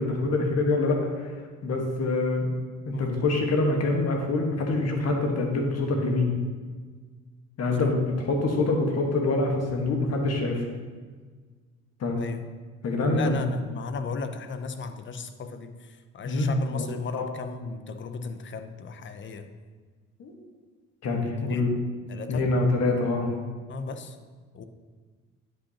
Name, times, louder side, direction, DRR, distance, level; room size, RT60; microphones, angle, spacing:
voice 1, 0.0-1.3 1.6-2.5 2.8-6.3 7.6-10.6 12.0-12.2 12.8-13.3 16.2-16.8 17.1-17.3 20.2-20.3 21.0-21.7 22.3-23.3, left 2 dB, 55° left, 2 dB, 1.4 m, -25 dB
voice 2, 2.9-3.2 7.8-7.9 12.2-12.4 13.1-19.5 21.4-21.7 22.1-22.5 23.7-24.2 24.5-24.6, left 4 dB, 40° left, 9 dB, 0.6 m, -36 dB
10.0 x 5.3 x 2.9 m, 1.5 s
supercardioid pair, 80°, 30 cm